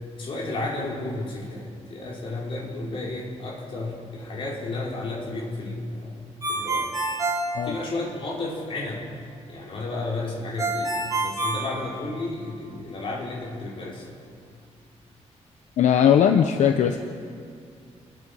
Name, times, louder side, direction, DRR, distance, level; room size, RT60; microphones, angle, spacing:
voice 1, 0.1-6.9 7.6-9.1 9.5-14.1, left 2 dB, 45° left, -3 dB, 5.5 m, -32 dB
Ringtone, 6.4-8.3 10.6-12.5, right 2 dB, 30° right, 6.1 m, -27 dB
voice 2, 15.8-17.0, left 8 dB, 80° left, 6 dB, 1.0 m, -19 dB
29.5 x 21.5 x 5.6 m, 2.2 s
wide cardioid pair, 170°, 12 cm